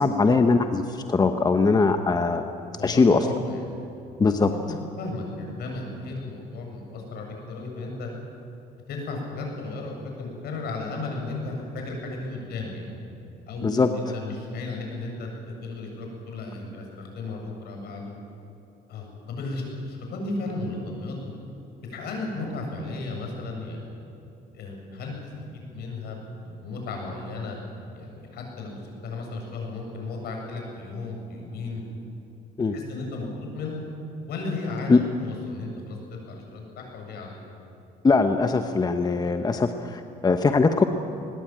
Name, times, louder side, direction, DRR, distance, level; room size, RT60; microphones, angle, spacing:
voice 1, 0.0-2.4 2.8-3.3 4.2-4.5 13.6-13.9 32.6-32.8 34.9-35.0 38.0-40.8, left 4 dB, 25° left, 7 dB, 1.1 m, -21 dB
voice 2, 2.8-3.7 4.5-8.1 8.9-13.0 13.5-18.1 18.9-21.3 21.8-24.0 24.5-25.2 25.5-27.6 27.9-31.8 32.7-33.3 33.5-33.8 34.3-37.4, left 3 dB, 70° left, 1 dB, 7.4 m, -34 dB
21.0 x 20.5 x 9.0 m, 2.7 s
cardioid pair, 110°, 17 cm